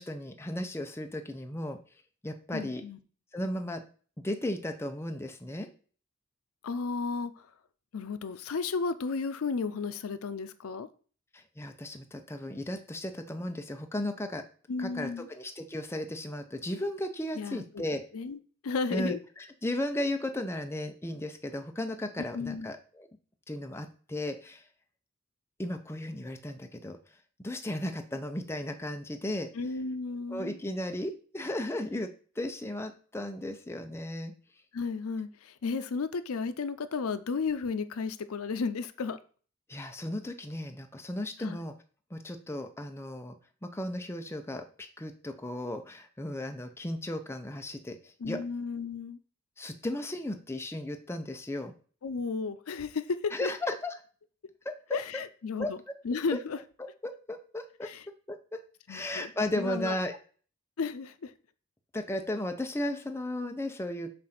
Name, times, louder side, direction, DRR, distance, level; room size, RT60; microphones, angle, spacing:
voice 1, 0.0-1.8 2.2-2.8 3.3-3.8 4.2-5.7 11.3-14.4 14.8-18.0 18.9-23.1 23.5-24.6 25.6-27.0 27.4-29.5 30.3-32.1 32.4-34.3 39.7-41.7 42.1-43.4 43.6-48.0 48.3-48.4 49.6-51.7 53.3-53.9 54.6-54.7 55.6-55.7 57.0-57.9 58.3-58.6 58.9-60.1 61.9-64.1, left 1 dB, 10° left, 5 dB, 0.6 m, -35 dB
voice 2, 2.5-3.0 6.6-7.5 7.9-10.9 14.7-15.3 17.3-17.8 18.1-19.2 22.3-22.7 29.5-30.6 34.7-39.2 41.4-41.6 48.2-49.2 52.0-53.5 54.9-55.8 56.0-56.6 57.8-58.1 58.9-59.3 59.6-60.0 60.8-61.3, left 4 dB, 90° left, 12 dB, 0.5 m, -33 dB
7.6 x 2.6 x 5.8 m, 0.41 s
head